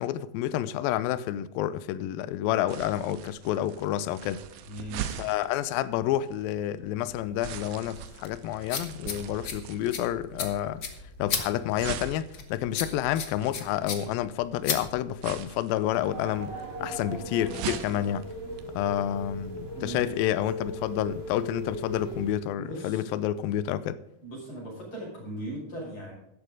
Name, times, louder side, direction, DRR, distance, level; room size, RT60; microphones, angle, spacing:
voice 1, 0.0-4.4 5.2-10.8 11.2-18.3 18.7-24.0, left 12 dB, 80° left, 2.4 m, -29 dB
sound 1, 2.7-19.5, right 10 dB, 90° right, 2.8 m, -42 dB
voice 2, 4.7-5.3 19.8-20.1 22.6-23.1 24.2-26.1, right 1 dB, 35° left, 6.2 m, -38 dB
sound 2, 7.1-15.5, left 6 dB, 65° left, 1.0 m, -36 dB
sound 3, 15.9-22.3, right 1 dB, 25° right, 3.1 m, -38 dB
13.0 x 10.5 x 3.8 m
omnidirectional pair, 4.3 m